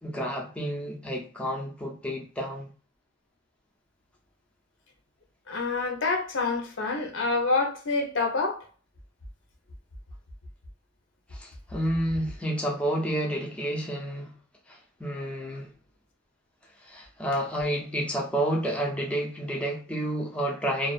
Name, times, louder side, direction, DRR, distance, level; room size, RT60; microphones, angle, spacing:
voice 1, 0.0-2.7 11.3-14.3 14.7-15.7 16.8-20.9, right 1 dB, 5° left, 0.4 m, -30 dB
voice 2, 5.5-8.6, left 3 dB, 80° left, 0.7 m, -27 dB
2.3 x 2.2 x 2.3 m
head